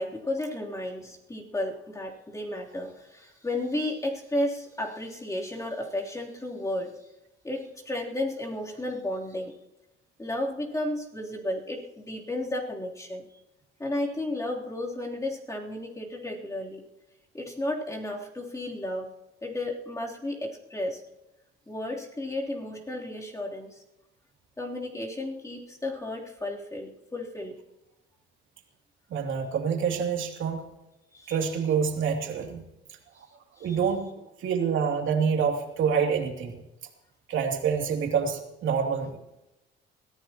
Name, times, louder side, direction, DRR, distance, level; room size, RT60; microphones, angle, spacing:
voice 1, 0.0-7.1 7.4-9.5 10.2-13.2 13.8-16.8 17.3-19.1 19.4-21.0 21.7-23.8 24.6-27.6 31.1-31.4 33.6-33.8, left 1 dB, 15° left, -2 dB, 3.4 m, -33 dB
voice 2, 29.1-30.6 31.3-32.6 32.9-33.0 33.6-34.1 34.4-36.6 37.3-39.2, right 6 dB, 70° right, 2 dB, 2.8 m, -27 dB
22.5 x 15.5 x 3.0 m, 0.92 s
cardioid pair, 105°, 21 cm